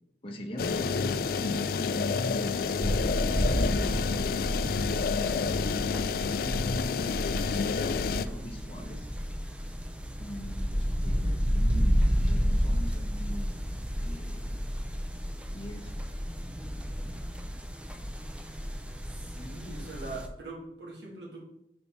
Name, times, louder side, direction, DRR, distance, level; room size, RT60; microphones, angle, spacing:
voice 1, 0.2-4.2 5.7-9.1 10.2-14.5 15.5-15.9, equal, 30° left, 1 dB, 0.9 m, -41 dB
sound 1, 0.6-8.3, left 5 dB, 55° left, 0.3 m, -29 dB
sound 2, 2.8-20.3, equal, 5° right, 0.5 m, -31 dB
voice 2, 19.0-21.4, right 2 dB, 80° right, -4 dB, 2.6 m, -42 dB
5.5 x 5.1 x 5.5 m, 0.80 s
head